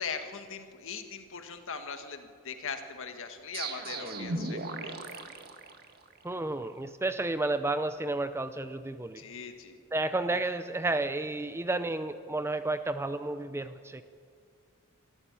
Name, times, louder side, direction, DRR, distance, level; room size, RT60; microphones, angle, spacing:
voice 1, 0.0-5.2 9.2-9.8, left 5 dB, 60° left, 7 dB, 1.8 m, -40 dB
sound 1, 3.5-6.3, right 2 dB, 45° right, 1.7 m, -37 dB
voice 2, 6.2-9.2 9.9-14.0, right 2 dB, 10° right, 11 dB, 0.5 m, -31 dB
23.5 x 14.5 x 8.8 m, 2.2 s
head